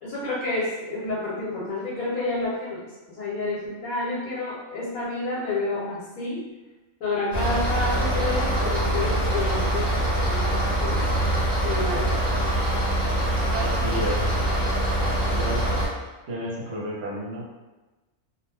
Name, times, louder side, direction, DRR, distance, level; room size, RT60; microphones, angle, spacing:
voice 1, 0.0-2.8 3.1-6.4 7.0-9.9 10.2-11.0 11.6-12.5, left 2 dB, 75° left, -7 dB, 1.1 m, -29 dB
sound 1, 7.3-15.9, right 1 dB, 10° left, 0.8 m, -24 dB
voice 2, 13.5-14.2 15.3-15.6 16.3-17.4, right 1 dB, 60° right, -5 dB, 0.8 m, -31 dB
2.3 x 2.1 x 3.2 m, 1.1 s
omnidirectional pair, 1.4 m